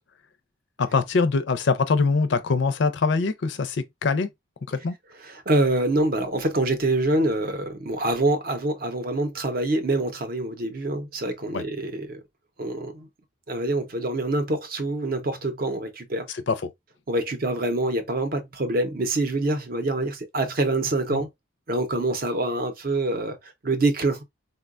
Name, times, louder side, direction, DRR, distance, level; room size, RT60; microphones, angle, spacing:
voice 1, 0.8-4.3 4.7-4.9 11.5-11.6 16.3-16.6, left 4 dB, 60° left, 0.4 m, -23 dB
voice 2, 5.2-12.2 12.6-13.1 13.5-16.3 17.1-21.3 21.7-24.2, right 2 dB, 45° right, 0.6 m, -25 dB
3.8 x 2.2 x 2.4 m
head